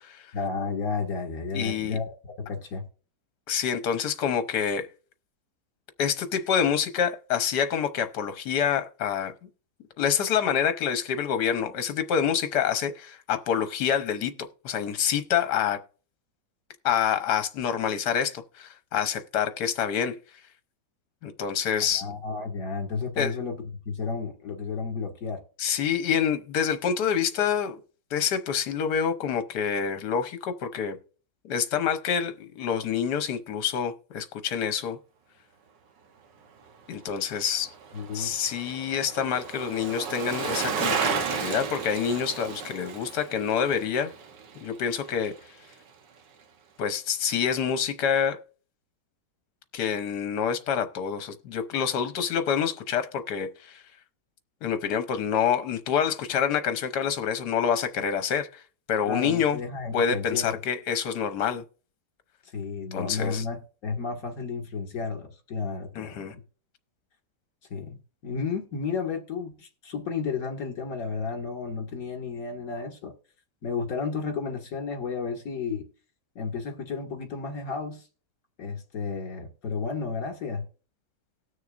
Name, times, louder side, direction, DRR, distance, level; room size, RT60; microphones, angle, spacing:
voice 1, 0.3-2.8 21.9-23.6 23.9-25.4 37.9-38.3 59.1-60.6 62.5-66.2 67.7-73.1 73.6-75.9 76.4-78.1 78.6-80.6, left 5 dB, 55° left, 2.3 m, -32 dB
voice 2, 1.5-2.0 3.5-4.9 6.0-9.3 10.0-14.3 14.6-15.8 16.8-20.1 21.2-22.0 23.2-23.3 25.6-27.8 28.1-31.0 31.4-35.0 36.9-37.7 38.1-44.1 44.6-45.3 46.8-48.4 49.7-53.8 54.6-58.6 58.9-59.6 59.9-61.6 62.9-63.4 66.0-66.3, left 7 dB, 70° left, 1.5 m, -27 dB
Bicycle, 37.0-45.4 45.7-45.8, right 6 dB, 90° right, 1.7 m, -33 dB
19.0 x 6.4 x 2.5 m
omnidirectional pair, 1.9 m